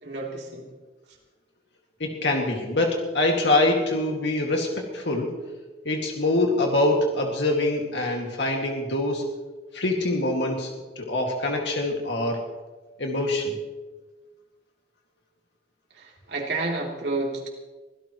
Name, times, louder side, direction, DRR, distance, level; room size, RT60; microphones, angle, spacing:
voice 1, 0.0-0.7 15.9-17.5, right 2 dB, 65° right, -1 dB, 3.3 m, -30 dB
voice 2, 2.0-5.3 5.8-9.3 9.7-12.4 13.0-13.5, left 2 dB, 70° left, 0 dB, 2.2 m, -24 dB
24.5 x 17.0 x 3.1 m, 1.3 s
head